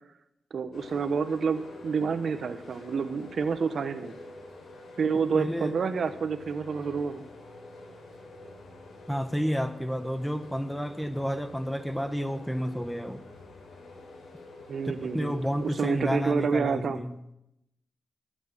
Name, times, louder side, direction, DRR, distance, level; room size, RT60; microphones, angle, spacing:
voice 1, 0.5-4.1 5.0-7.3 14.7-17.0, right 5 dB, 70° right, 11 dB, 1.1 m, -29 dB
sound 1, 0.7-16.2, left 2 dB, 80° left, 4.6 m, -47 dB
voice 2, 5.3-5.8 9.1-13.2 14.8-17.2, equal, 5° left, 11 dB, 1.3 m, -30 dB
20.0 x 8.5 x 7.6 m, 0.84 s
cardioid pair, 70°, 0 cm